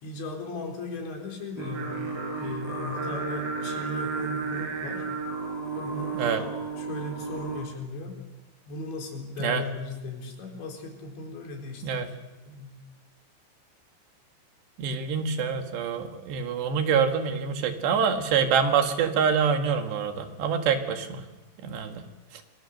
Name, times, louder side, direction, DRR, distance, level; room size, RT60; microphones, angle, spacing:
voice 1, 0.0-5.0 5.7-6.5 6.8-8.2 8.7-12.1 12.5-12.8, left 2 dB, 80° left, 2 dB, 6.3 m, -37 dB
Singing, 1.6-7.6, right 4 dB, 35° right, 5.0 m, -33 dB
voice 2, 14.8-21.2 21.6-22.0, right 6 dB, 70° right, 5 dB, 3.9 m, -26 dB
27.0 x 24.0 x 6.6 m, 1.1 s
omnidirectional pair, 5.2 m